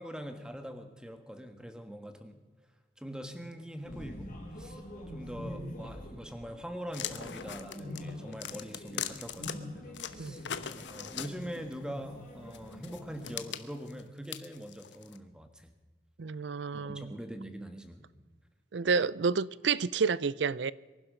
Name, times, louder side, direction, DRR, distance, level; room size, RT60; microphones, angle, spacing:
voice 1, 0.0-2.4 3.0-4.8 5.1-10.5 10.9-15.7 16.7-18.1, equal, 5° right, 1.4 m, -43 dB
sound 1, 3.8-13.4, left 1 dB, 45° left, 5.3 m, -45 dB
sound 2, 6.9-9.5 9.9-11.7 12.5-15.2, left 9 dB, 80° left, 1.1 m, -40 dB
voice 2, 16.2-17.2 18.7-20.7, right 5 dB, 75° right, 0.5 m, -29 dB
24.5 x 11.5 x 5.1 m
head